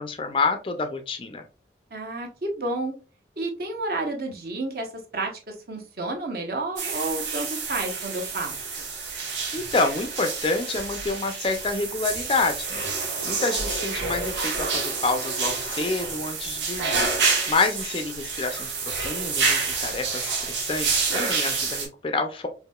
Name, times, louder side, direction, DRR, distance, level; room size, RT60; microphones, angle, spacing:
voice 1, 0.0-1.4 9.5-22.5, left 3 dB, 30° left, 7 dB, 0.4 m, -28 dB
voice 2, 1.9-2.9 3.4-8.5, right 2 dB, 55° right, 2 dB, 0.8 m, -31 dB
sound 1, 6.8-21.9, right 4 dB, 85° right, 1.1 m, -28 dB
4.7 x 2.7 x 2.2 m, 0.33 s
head